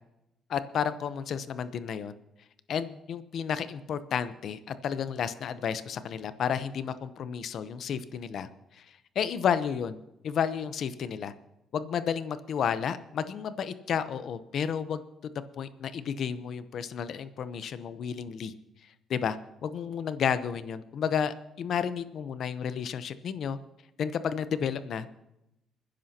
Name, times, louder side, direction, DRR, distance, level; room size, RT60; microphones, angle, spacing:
voice 1, 0.5-2.1 2.7-8.5 8.8-8.9 9.1-10.0 10.2-11.3 11.7-15.0 15.6-18.5 19.1-19.4 19.6-23.6 24.0-25.1, left 7 dB, 65° left, 12 dB, 0.8 m, -31 dB
28.0 x 10.5 x 2.9 m, 0.89 s
cardioid pair, 95°, 0 cm